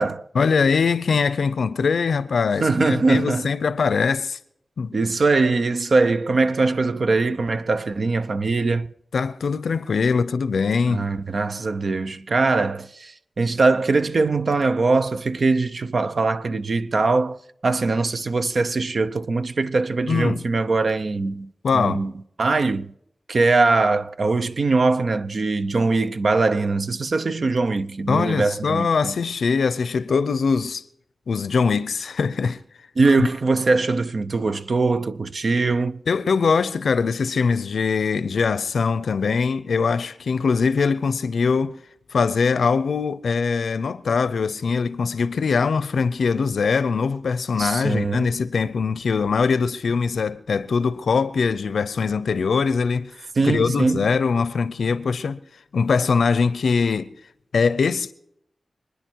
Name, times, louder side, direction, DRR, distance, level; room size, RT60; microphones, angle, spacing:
voice 1, 0.3-4.4 4.8-4.9 9.1-11.1 20.1-20.4 21.6-22.0 28.1-30.8 31.3-32.6 33.2-33.3 36.1-41.8 42.1-55.4 55.7-57.1 57.5-58.1, left 5 dB, 90° left, 0.6 m, -22 dB
voice 2, 2.6-3.5 4.9-8.9 10.9-17.4 17.6-22.1 22.4-22.9 23.3-29.1 33.0-36.0 47.6-48.4 53.4-54.1, right 3 dB, 60° right, 0.6 m, -22 dB
26.5 x 9.8 x 4.7 m
wide cardioid pair, 85°, 0 cm